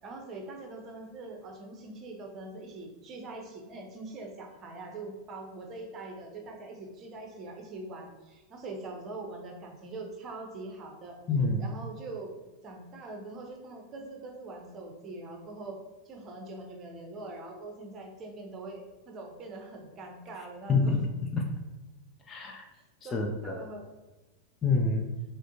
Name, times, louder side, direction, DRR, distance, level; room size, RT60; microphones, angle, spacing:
voice 1, 0.0-11.2 11.6-15.8 16.0-21.0 22.7-23.9, right 2 dB, 30° right, 2 dB, 0.8 m, -43 dB
voice 2, 11.3-11.6 20.7-21.0 21.3-21.5 22.3-22.7 23.1-23.6 24.6-25.1, left 3 dB, 25° left, 3 dB, 0.5 m, -27 dB
6.0 x 2.2 x 2.7 m, 1.1 s
figure-of-eight pair, 90°, 0 cm